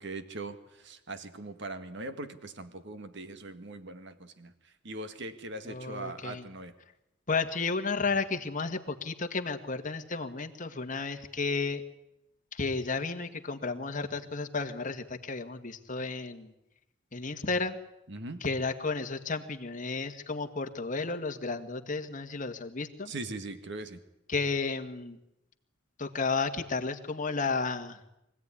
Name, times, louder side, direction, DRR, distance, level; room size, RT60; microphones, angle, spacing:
voice 1, 0.0-6.7 18.1-18.4 23.1-24.0, right 2 dB, 65° right, 10 dB, 1.8 m, -41 dB
voice 2, 5.7-6.5 7.3-11.8 12.5-16.5 17.1-17.8 18.4-23.1 24.3-25.2 26.0-28.0, left 4 dB, 40° left, 6 dB, 1.8 m, -32 dB
24.5 x 16.5 x 9.9 m, 0.86 s
head